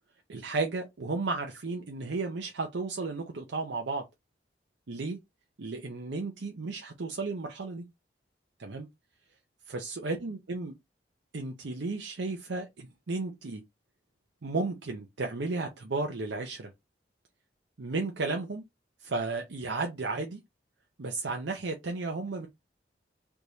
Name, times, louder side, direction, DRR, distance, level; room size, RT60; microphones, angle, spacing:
voice 1, 0.3-4.1 4.9-5.2 5.6-7.8 8.6-8.9 9.7-10.7 11.3-13.6 14.4-16.7 17.8-18.6 19.0-20.4 21.0-22.5, right 3 dB, 85° right, 0.7 m, -33 dB
3.4 x 3.0 x 2.6 m
head